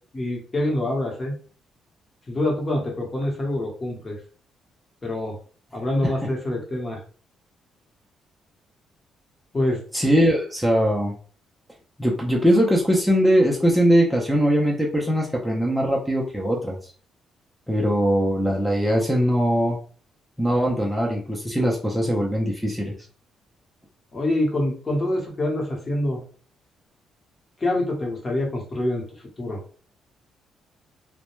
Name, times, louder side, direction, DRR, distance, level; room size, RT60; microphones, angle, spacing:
voice 1, 0.1-1.4 2.3-4.2 5.0-5.4 5.7-7.0 9.5-9.8 24.1-26.2 27.6-29.0 29.4-29.6, left 1 dB, 30° left, 0 dB, 1.0 m, -25 dB
voice 2, 9.9-11.1 12.0-16.9 17.7-19.8 20.4-22.9, equal, ahead, -3 dB, 0.5 m, -21 dB
2.2 x 2.1 x 3.0 m, 0.42 s
cardioid pair, 90°, 0 cm